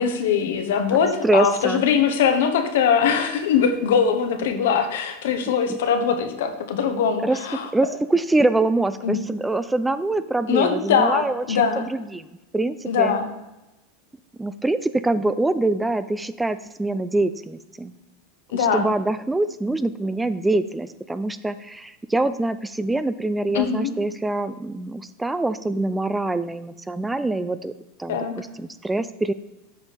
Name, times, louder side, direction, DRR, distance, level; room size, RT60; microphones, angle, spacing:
voice 1, 0.0-7.7 9.0-9.2 10.5-11.9 12.9-13.3 18.5-18.9 23.5-23.9 28.1-28.4, left 7 dB, 80° left, 7 dB, 1.0 m, -21 dB
voice 2, 0.9-1.8 7.2-7.4 7.7-12.3 12.5-13.1 14.4-17.9 18.5-27.7 28.0-29.3, right 2 dB, 10° right, 13 dB, 0.3 m, -24 dB
7.9 x 5.2 x 4.1 m, 0.99 s
supercardioid pair, 120°, 0 cm